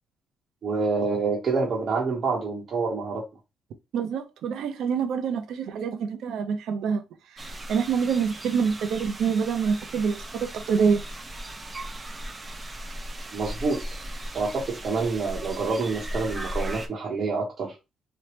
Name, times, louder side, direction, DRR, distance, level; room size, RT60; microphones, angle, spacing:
voice 1, 0.6-3.2 13.3-13.8 14.3-17.7, right 4 dB, 55° right, 0.8 m, -27 dB
voice 2, 3.9-7.0 7.3-11.0, right 6 dB, 75° right, 0.5 m, -26 dB
sound 1, 7.4-16.9, right 1 dB, 25° right, 0.5 m, -37 dB
3.2 x 2.1 x 2.9 m
cardioid pair, 90°, 0 cm